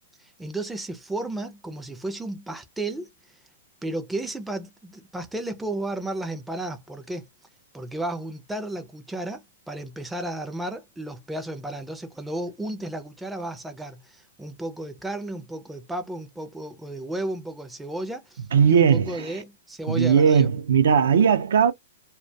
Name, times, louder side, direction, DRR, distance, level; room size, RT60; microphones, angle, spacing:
voice 1, 0.2-3.1 3.8-7.3 7.7-20.5, right 1 dB, 5° right, 0.4 m, -33 dB
voice 2, 18.5-19.3 19.9-21.7, right 7 dB, 75° right, 0.5 m, -18 dB
2.2 x 2.1 x 2.6 m
hypercardioid pair, 155°, 0 cm